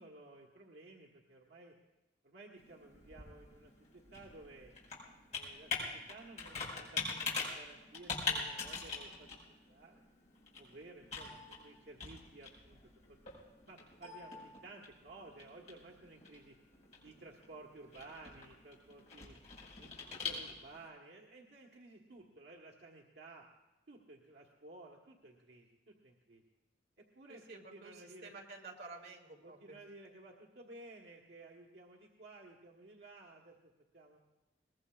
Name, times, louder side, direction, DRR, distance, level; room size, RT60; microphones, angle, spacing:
voice 1, 0.0-1.7 2.2-4.7 5.3-9.3 9.7-10.0 10.6-12.8 13.1-13.2 13.7-16.6 17.0-19.3 19.8-23.5 23.9-26.4 27.0-28.3 29.4-33.5 33.9-34.2, right 2 dB, 90° right, 0 dB, 1.4 m, -55 dB
Computer keyboard, 2.6-20.9, left 4 dB, 45° left, 5.1 m, -44 dB
voice 2, 27.3-29.8, right 3 dB, 65° right, 0 dB, 2.5 m, -51 dB
22.0 x 20.0 x 2.4 m, 1.1 s
head